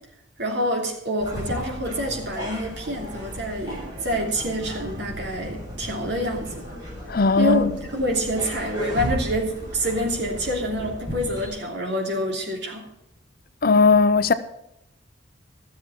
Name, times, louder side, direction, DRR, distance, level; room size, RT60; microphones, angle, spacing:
voice 1, 0.4-6.7 7.4-12.8, equal, 60° right, 3.0 m, -27 dB
sound 1, 1.2-11.5, equal, 20° right, 6.6 m, -35 dB
voice 2, 7.1-7.7 13.6-14.3, left 4 dB, 50° left, 0.6 m, -17 dB
13.5 x 7.3 x 7.4 m
head